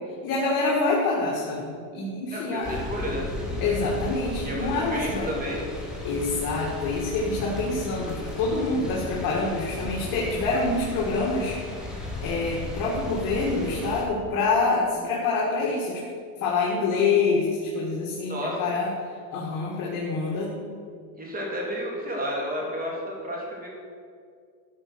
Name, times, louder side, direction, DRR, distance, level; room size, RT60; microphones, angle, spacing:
voice 1, 0.2-2.8 3.6-5.3 6.0-11.6 12.2-16.0 16.4-18.9 19.3-20.5, left 3 dB, 50° left, -3 dB, 2.2 m, -26 dB
voice 2, 2.3-3.3 4.4-5.6 18.3-18.7 21.2-23.7, equal, 20° right, -2 dB, 3.2 m, -31 dB
sound 1, 2.6-14.0, left 2 dB, ahead, 2.4 m, -35 dB
13.0 x 6.2 x 6.3 m, 2.2 s
supercardioid pair, 130°, 40 cm